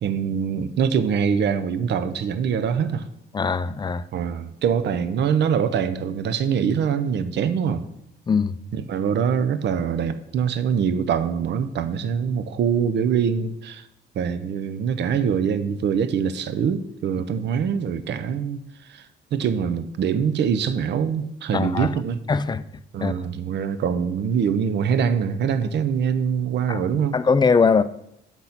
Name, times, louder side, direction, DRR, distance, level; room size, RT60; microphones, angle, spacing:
voice 1, 0.0-3.1 4.1-7.9 8.7-13.9 14.2-19.1 19.3-22.2 22.9-27.2, right 7 dB, 60° right, 0.6 m, -24 dB
voice 2, 3.3-4.0 8.3-8.5 21.5-21.9 22.3-22.6 23.0-23.1 26.7-26.8 27.1-27.8, left 5 dB, 20° left, 0.4 m, -20 dB
7.1 x 4.0 x 5.7 m
cardioid pair, 90°, 20 cm